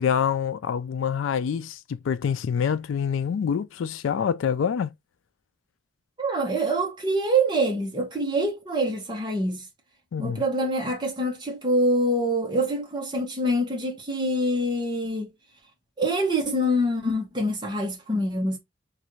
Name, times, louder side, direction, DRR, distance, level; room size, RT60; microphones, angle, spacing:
voice 1, 0.0-4.9 10.1-10.4, left 7 dB, 75° left, 0.3 m, -26 dB
voice 2, 6.2-9.7 10.2-15.3 16.0-18.6, right 1 dB, 20° right, 1.0 m, -25 dB
3.2 x 2.5 x 3.0 m
head